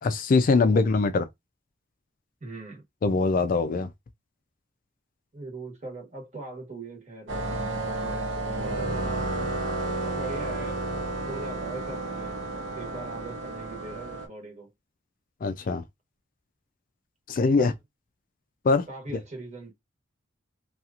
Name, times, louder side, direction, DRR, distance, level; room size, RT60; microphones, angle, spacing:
voice 1, 0.0-1.2 3.0-3.9 15.4-15.8 17.3-17.7 18.6-18.8, left 4 dB, 45° left, 0.4 m, -22 dB
voice 2, 2.4-2.8 5.3-7.3 7.9-9.0 10.1-10.8 11.2-12.5 12.7-14.7 17.6-17.7 18.9-19.7, right 2 dB, 40° right, 1.1 m, -40 dB
sound 1, 7.3-14.3, right 2 dB, 75° right, 0.9 m, -31 dB
2.8 x 2.3 x 2.3 m
head